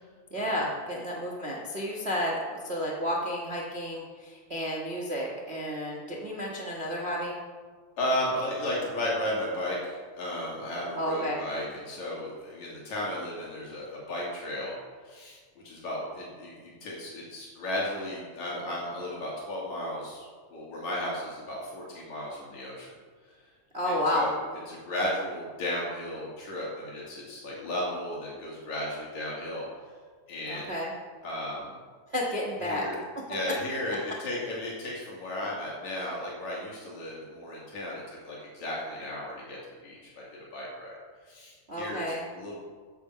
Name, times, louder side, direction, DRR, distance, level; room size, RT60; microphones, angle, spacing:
voice 1, 0.3-7.4 10.9-11.4 23.7-24.3 30.5-30.9 32.1-32.8 33.1-33.2 41.7-42.2, equal, 30° right, -2 dB, 1.3 m, -31 dB
voice 2, 8.0-14.7 15.0-15.4 15.6-22.9 23.9-24.4 24.7-29.6 30.3-30.7 31.2-31.8 32.6-33.0 33.3-39.6 39.8-40.2 40.5-41.0 41.3-42.0 42.3-42.5, left 1 dB, 70° left, -5 dB, 3.9 m, -34 dB
14.0 x 8.0 x 5.8 m, 1.5 s
omnidirectional pair, 3.4 m